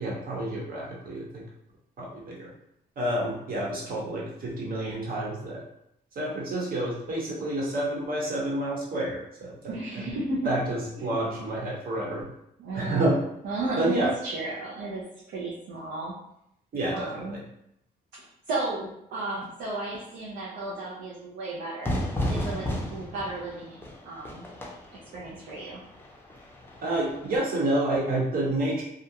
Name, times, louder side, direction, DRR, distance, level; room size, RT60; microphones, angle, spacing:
voice 1, 0.0-1.4 2.0-2.5 3.0-5.6 6.1-10.0 10.4-12.3 12.7-13.2 13.8-14.1 16.7-17.4 26.8-28.8, right 1 dB, 55° right, -3 dB, 1.0 m, -29 dB
voice 2, 9.7-10.5 10.9-11.5 12.6-13.2 13.4-16.1 16.9-17.4 18.5-22.0 22.3-24.5 25.1-25.8, right 2 dB, 85° right, -5 dB, 0.6 m, -34 dB
Fire / Fireworks, 21.8-27.4, left 1 dB, 10° left, 0.5 m, -34 dB
2.5 x 2.1 x 2.8 m, 0.77 s
cardioid pair, 90°, 18 cm